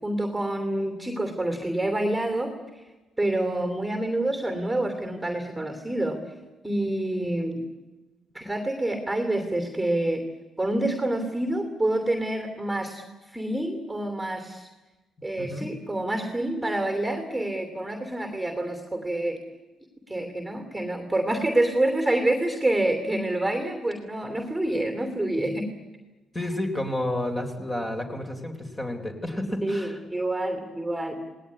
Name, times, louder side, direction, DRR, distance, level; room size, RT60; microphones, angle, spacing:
voice 1, 0.0-2.5 3.2-6.2 6.6-7.6 8.3-10.2 10.6-14.7 15.2-19.4 20.1-25.7 29.6-31.2, right 1 dB, 5° right, 6 dB, 2.8 m, -27 dB
voice 2, 15.4-15.7 26.3-30.0, left 1 dB, 20° left, 4 dB, 3.8 m, -30 dB
28.5 x 19.0 x 9.8 m, 1.2 s
cardioid pair, 145°, 0 cm